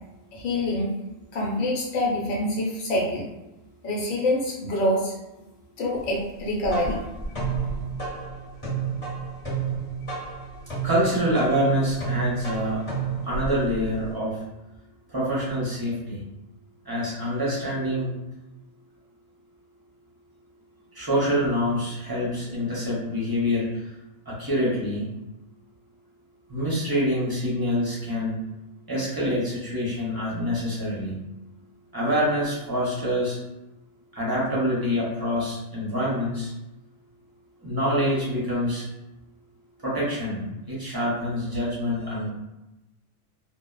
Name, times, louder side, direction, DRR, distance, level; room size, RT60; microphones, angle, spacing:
voice 1, 0.3-0.9 1.3-3.3 3.8-5.1 5.8-7.0, left 1 dB, 80° left, -4 dB, 1.1 m, -26 dB
sound 1, 6.4-14.1, right 5 dB, 35° left, 1.0 m, -31 dB
voice 2, 10.8-12.8 13.3-14.4 15.1-16.2 16.9-18.1 20.9-23.8 24.3-25.1 26.5-28.4 28.9-31.2 31.9-33.4 34.1-36.5 37.6-38.8 39.8-42.3, equal, 30° right, -7 dB, 0.4 m, -26 dB
2.7 x 2.0 x 2.2 m, 0.97 s
omnidirectional pair, 1.4 m